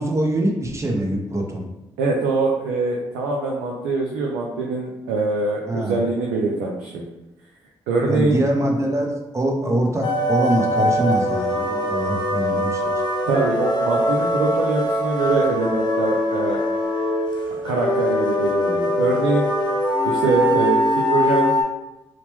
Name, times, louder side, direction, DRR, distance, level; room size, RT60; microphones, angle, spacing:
voice 1, 0.0-1.6 5.7-6.0 8.1-13.0, right 1 dB, 25° right, 1 dB, 0.7 m, -23 dB
voice 2, 2.0-7.0 7.9-8.4 13.2-16.6 17.5-19.5 20.0-20.8 21.1-21.5, right 3 dB, 85° right, -2 dB, 0.4 m, -23 dB
sound 1, 10.0-21.6, equal, 40° left, 0.7 m, -22 dB
2.8 x 2.1 x 3.0 m, 0.99 s
hypercardioid pair, 45°, 12 cm